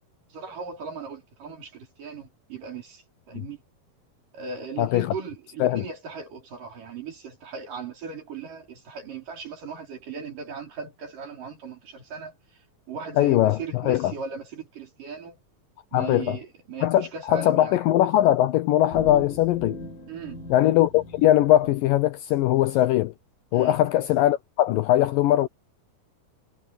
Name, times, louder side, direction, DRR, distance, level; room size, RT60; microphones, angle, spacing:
voice 1, 0.3-3.6 4.3-12.3 12.9-15.4 15.9-17.8 20.1-20.4 23.5-23.8, right 5 dB, 55° right, 6.3 m, -38 dB
voice 2, 13.2-14.1 15.9-16.4 16.8-19.8 20.5-23.1 23.5-25.5, left 13 dB, 80° left, 2.1 m, -21 dB
sound 1, 18.9-21.8, left 2 dB, 60° left, 5.5 m, -38 dB
omnidirectional pair, 4.4 m